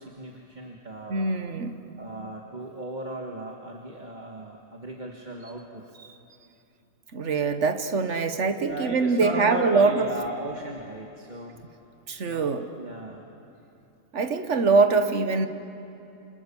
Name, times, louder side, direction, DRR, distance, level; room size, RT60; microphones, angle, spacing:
voice 1, 0.0-1.4 2.0-5.8 8.6-11.6 12.2-13.3, right 1 dB, 35° right, 0 dB, 1.8 m, -36 dB
voice 2, 1.1-1.8 6.1-6.2 7.1-10.1 12.1-12.7 14.1-15.5, right 4 dB, 60° right, 8 dB, 1.6 m, -23 dB
28.5 x 26.5 x 7.0 m, 2.8 s
omnidirectional pair, 1.4 m